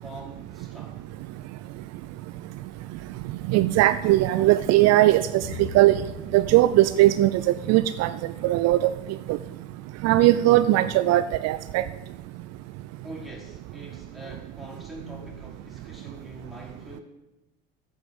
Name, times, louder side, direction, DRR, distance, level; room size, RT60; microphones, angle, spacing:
voice 1, 0.0-1.0 13.0-17.0, right 1 dB, ahead, -4 dB, 5.1 m, -43 dB
voice 2, 3.5-5.9 6.3-8.1 8.4-8.8 9.3-9.4 10.0-11.8, right 15 dB, 60° right, 14 dB, 0.5 m, -19 dB
sound 1, 5.4-8.1, left 4 dB, 70° left, 4.8 m, -41 dB
9.6 x 9.4 x 7.8 m, 1.0 s
supercardioid pair, 80°, 29 cm